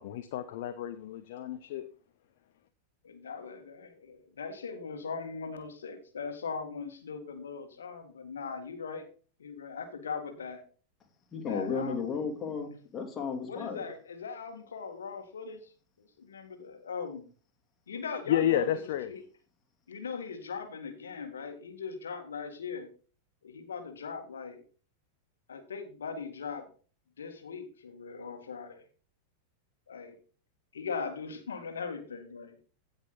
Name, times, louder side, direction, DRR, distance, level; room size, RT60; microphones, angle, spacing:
voice 1, 0.0-1.9 18.3-19.1, left 11 dB, 50° left, 9 dB, 0.8 m, -30 dB
voice 2, 3.0-9.1 9.4-10.6 11.5-12.2 13.5-15.7 16.0-17.2 17.9-19.2 19.9-22.9 23.4-24.6 25.5-26.7 27.2-28.8 29.9-30.2 30.7-32.6, left 5 dB, 65° left, 6 dB, 1.7 m, -40 dB
voice 3, 11.3-13.9, left 5 dB, 25° left, 3 dB, 2.7 m, -34 dB
16.0 x 5.4 x 3.8 m, 0.38 s
figure-of-eight pair, 90°, 0 cm